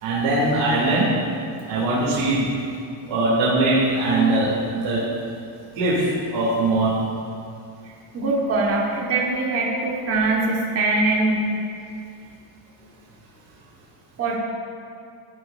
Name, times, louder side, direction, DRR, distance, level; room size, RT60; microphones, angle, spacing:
voice 1, 0.0-1.1 1.7-2.6 3.1-5.0 5.7-6.9, right 2 dB, 75° right, -8 dB, 2.8 m, -21 dB
voice 2, 8.1-11.4 14.2-14.3, right 2 dB, 30° right, -3 dB, 1.4 m, -22 dB
15.5 x 9.6 x 2.6 m, 2.5 s
cardioid pair, 155°, 46 cm